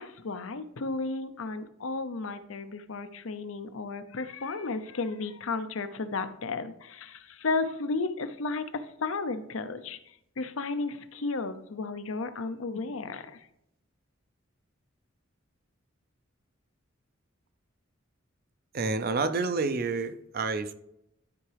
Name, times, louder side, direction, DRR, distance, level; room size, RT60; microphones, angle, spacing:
voice 1, 0.0-13.5, left 3 dB, 85° left, 10 dB, 0.7 m, -33 dB
voice 2, 18.7-20.7, right 3 dB, 50° right, 11 dB, 0.6 m, -29 dB
11.5 x 4.6 x 3.4 m, 0.79 s
head